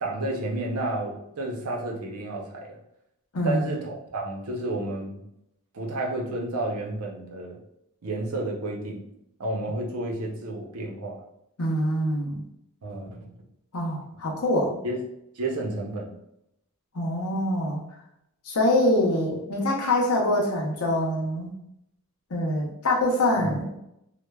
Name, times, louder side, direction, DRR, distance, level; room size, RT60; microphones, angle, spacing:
voice 1, 0.0-2.8 3.4-5.2 5.7-7.6 8.0-9.0 9.4-11.2 12.8-13.3 14.8-15.0 15.4-16.1 23.4-23.5, right 2 dB, 80° right, -1 dB, 0.6 m, -31 dB
voice 2, 11.6-12.4 13.7-14.8 16.9-17.8 18.4-21.5 22.3-23.7, left 1 dB, 80° left, 0 dB, 0.7 m, -24 dB
3.1 x 2.2 x 2.2 m, 0.78 s
head